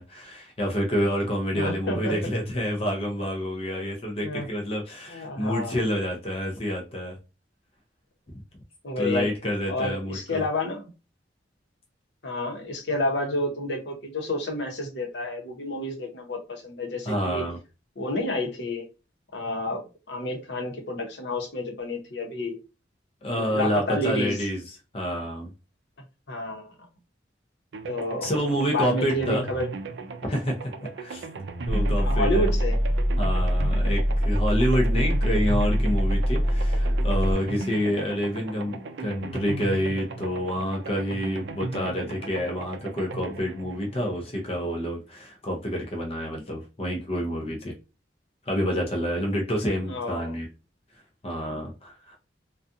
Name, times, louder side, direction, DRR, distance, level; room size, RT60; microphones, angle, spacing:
voice 1, 0.0-7.2 9.0-10.4 17.1-17.6 23.2-24.6 24.9-25.5 28.2-29.4 30.2-30.7 31.0-31.3 31.7-32.5 33.2-47.7 48.5-50.5 51.2-52.2, equal, 30° left, 0.6 m, -28 dB
voice 2, 1.5-2.3 4.2-4.5 5.1-5.8 8.8-9.3 9.7-10.9 12.2-17.4 18.0-18.9 19.3-19.8 20.1-22.6 23.4-24.4 26.3-26.7 27.9-28.3 28.7-29.7 32.0-32.8 49.8-50.4, left 1 dB, 70° left, 0.9 m, -30 dB
sound 1, 27.7-44.7, right 3 dB, 70° right, 0.4 m, -37 dB
sound 2, 31.7-37.3, equal, 5° right, 0.9 m, -23 dB
2.4 x 2.3 x 2.6 m
head